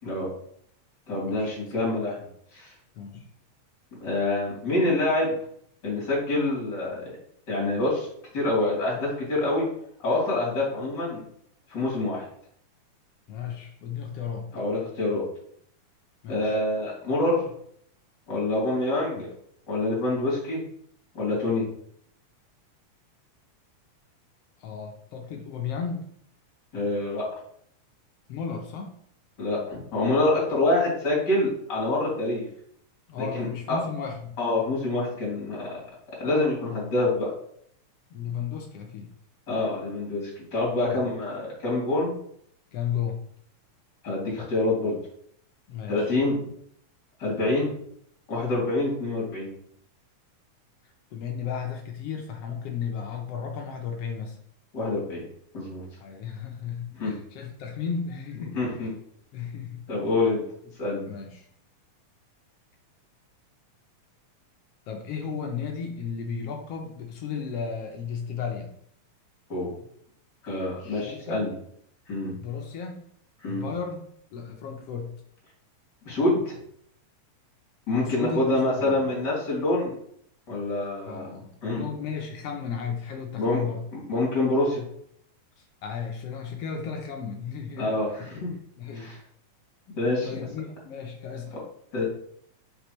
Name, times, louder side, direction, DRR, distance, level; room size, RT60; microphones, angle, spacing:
voice 1, 1.1-2.2 2.5-2.7 4.0-5.4 5.8-7.1 7.5-8.1 8.3-9.7 10.0-11.2 11.7-12.2 14.5-15.2 16.3-17.4 18.3-19.3 19.7-20.6 21.1-21.6 26.7-27.3 29.4-32.5 33.2-33.8 34.4-35.8 36.2-37.3 39.5-42.2 44.0-45.0 45.9-46.4 47.2-47.7 48.3-49.5 54.7-55.2 55.5-55.8 56.9-57.2 58.5-58.9 59.9-60.4 60.8-61.1 69.5-69.7 70.4-71.5 72.1-72.3 73.4-73.6 76.0-76.6 77.9-79.9 80.5-81.4 81.6-81.9 83.4-83.6 83.9-84.8 87.8-88.5 88.9-89.2 90.0-90.3 91.9-92.0, left 2 dB, 35° left, -5 dB, 3.4 m, -26 dB
voice 2, 13.3-14.5 16.2-16.6 19.1-19.3 24.6-26.1 28.3-28.9 33.1-34.4 38.1-39.1 40.9-41.3 42.7-43.2 45.7-46.1 51.1-54.4 56.0-58.9 59.3-59.8 61.1-61.5 64.9-68.7 70.8-71.4 72.3-73.0 73.5-74.0 74.3-75.1 78.0-78.4 78.8-79.0 81.1-83.8 85.8-87.9 88.8-89.1 90.2-91.6, left 6 dB, 75° left, 2 dB, 1.4 m, -34 dB
6.7 x 5.9 x 3.1 m, 0.67 s
omnidirectional pair, 3.6 m